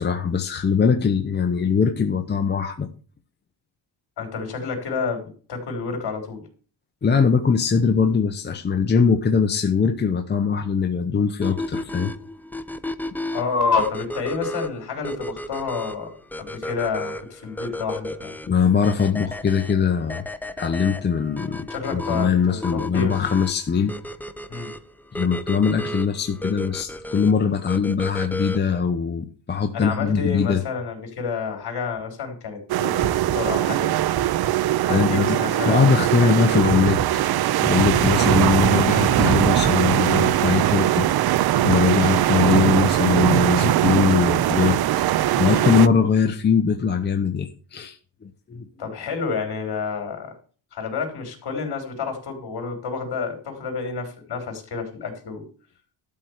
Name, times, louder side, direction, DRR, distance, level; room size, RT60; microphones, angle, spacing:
voice 1, 0.0-2.9 7.0-12.1 18.5-20.2 20.6-23.9 25.1-30.6 34.9-35.4 35.7-37.0 37.6-41.1 41.6-44.8 45.4-48.0 48.2-48.7, left 6 dB, 20° left, 5 dB, 0.8 m, -21 dB
voice 2, 4.2-6.4 13.3-16.1 16.4-18.3 21.7-23.3 24.5-24.7 29.7-33.9 34.9-36.3 48.8-50.3 50.7-55.5, left 5 dB, 55° left, 4 dB, 4.0 m, -29 dB
sound 1, 11.4-28.8, left 1 dB, 5° left, 0.4 m, -34 dB
sound 2, 32.7-45.9, right 13 dB, 55° right, 0.6 m, -21 dB
sound 3, 33.0-33.7 34.0-34.7 35.6-35.7 36.6-37.3 37.7-40.0, right 5 dB, 25° right, 0.9 m, -29 dB
12.5 x 4.5 x 8.0 m, 0.40 s
cardioid pair, 135°, 47 cm